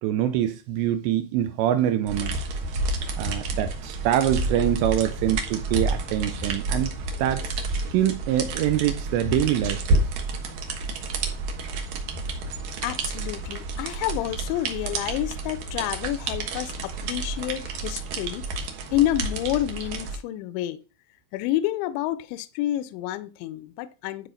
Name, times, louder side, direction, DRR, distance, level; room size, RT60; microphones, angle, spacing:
voice 1, 0.0-2.4 3.2-7.5 7.9-10.1, right 11 dB, 80° right, 2.6 m, -25 dB
sound 1, 2.1-20.2, right 2 dB, 65° right, 2.4 m, -30 dB
voice 2, 12.8-18.4 18.9-20.8 21.3-24.3, left 14 dB, 80° left, 2.9 m, -29 dB
12.5 x 4.5 x 5.0 m
omnidirectional pair, 5.4 m